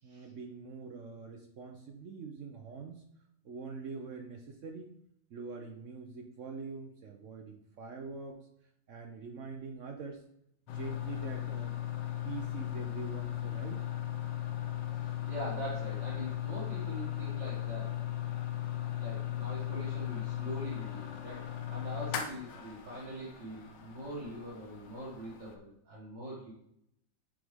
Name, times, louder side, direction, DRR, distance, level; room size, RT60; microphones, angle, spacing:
voice 1, 0.0-3.0 3.4-4.9 5.3-8.4 8.9-10.2 10.7-11.7 12.2-13.8, right 4 dB, 60° right, 3 dB, 0.8 m, -44 dB
sound 1, 10.7-25.6, left 12 dB, 80° left, 1.4 m, -37 dB
voice 2, 15.0-18.1 18.9-26.5, right 1 dB, 80° right, -6 dB, 2.1 m, -43 dB
7.1 x 4.8 x 3.5 m, 0.77 s
omnidirectional pair, 1.9 m